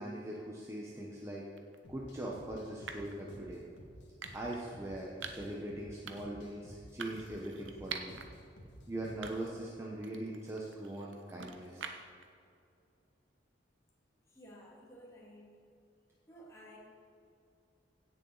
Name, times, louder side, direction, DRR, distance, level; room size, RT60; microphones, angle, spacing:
voice 1, 0.0-1.4 1.9-3.6 4.3-8.2 8.9-11.9, right 1 dB, 15° right, -3 dB, 0.9 m, -41 dB
sound 1, 1.6-1.8 2.9-3.2 4.2-4.6 5.2-5.5 6.1-6.4 7.0-8.3 8.7-8.8 9.2-9.7 10.0-12.2, right 6 dB, 85° right, 0.8 m, -46 dB
sound 2, 1.8-9.5, equal, 70° left, 1.7 m, -54 dB
voice 2, 14.3-15.6 16.3-16.8, equal, 15° left, -4 dB, 1.9 m, -54 dB
16.0 x 7.0 x 4.0 m, 2.5 s
head